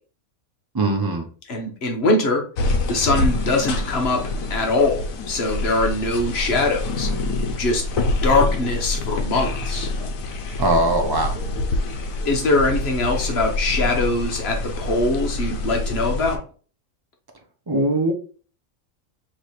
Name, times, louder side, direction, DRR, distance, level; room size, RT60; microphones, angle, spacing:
voice 1, 0.7-1.2 10.6-11.3 17.7-18.1, right 2 dB, 25° right, 2 dB, 0.5 m, -20 dB
voice 2, 1.5-2.4 2.9-4.2 4.5-7.1 7.5-9.9 12.2-16.4, left 2 dB, 50° left, 2 dB, 1.1 m, -22 dB
sound 1, 2.6-16.4, left 2 dB, 75° left, 1.1 m, -26 dB
3.3 x 3.1 x 4.2 m, 0.39 s
omnidirectional pair, 1.5 m